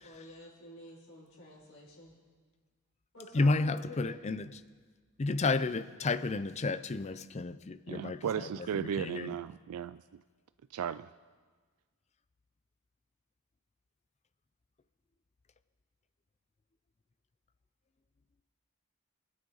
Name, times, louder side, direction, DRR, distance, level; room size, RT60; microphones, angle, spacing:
voice 1, 0.0-2.1 3.1-4.2, left 1 dB, 70° left, -5 dB, 5.7 m, -49 dB
voice 2, 3.3-4.5 5.2-9.4, left 3 dB, 30° left, 14 dB, 0.5 m, -32 dB
voice 3, 7.9-10.0 10.7-11.1, right 8 dB, 80° right, 14 dB, 0.3 m, -35 dB
25.0 x 9.8 x 4.0 m, 1.5 s
head